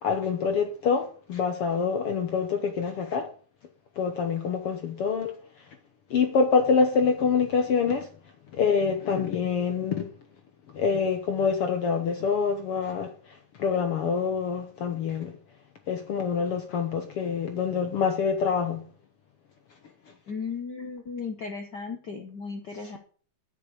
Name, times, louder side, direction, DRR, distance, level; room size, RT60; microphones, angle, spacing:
voice 1, 0.0-3.3 4.0-5.6 6.1-8.1 8.5-10.1 10.7-15.4 15.9-18.8 22.8-23.0, left 5 dB, 60° left, 1.6 m, -26 dB
voice 2, 20.3-23.0, left 5 dB, 85° left, 0.9 m, -35 dB
10.5 x 7.7 x 7.9 m
omnidirectional pair, 3.7 m